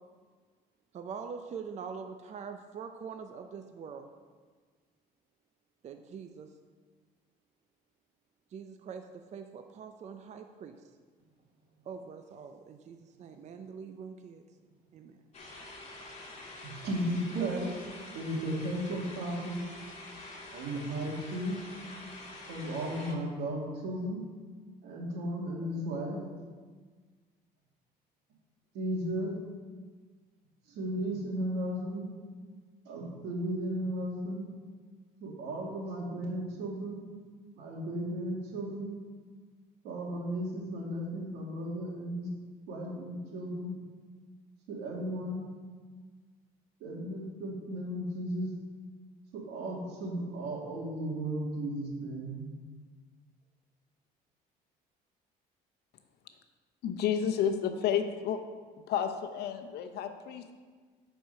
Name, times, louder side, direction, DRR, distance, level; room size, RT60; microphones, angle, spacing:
voice 1, 0.9-4.1 5.8-6.5 8.5-10.8 11.9-14.4 14.9-15.2, right 6 dB, 45° right, 6 dB, 0.5 m, -44 dB
sound 1, 15.3-23.1, left 2 dB, 40° left, 1.8 m, -47 dB
voice 2, 16.6-17.8 18.1-19.6 20.5-21.6 22.5-24.2 24.8-26.2 28.7-29.4 30.7-32.0 32.9-34.4 35.2-37.0 37.6-38.9 39.8-42.3 42.7-43.8 44.7-45.5 46.8-48.5 49.3-52.5, right 1 dB, 80° right, -2 dB, 2.2 m, -35 dB
voice 3, 56.8-58.4 58.9-60.6, left 8 dB, 75° left, 7 dB, 0.8 m, -31 dB
9.2 x 4.6 x 5.6 m, 1.5 s
cardioid pair, 110°, 17 cm